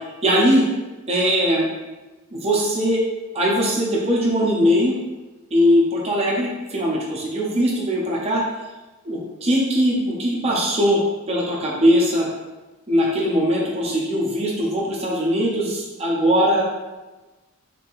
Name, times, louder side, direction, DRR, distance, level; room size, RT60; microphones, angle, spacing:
voice 1, 0.2-0.6 1.1-1.7 2.3-3.0 3.3-5.0 5.5-8.4 9.0-11.0 11.3-12.3 12.9-16.6, equal, 30° right, -4 dB, 0.7 m, -20 dB
3.3 x 2.9 x 3.0 m, 1.1 s
head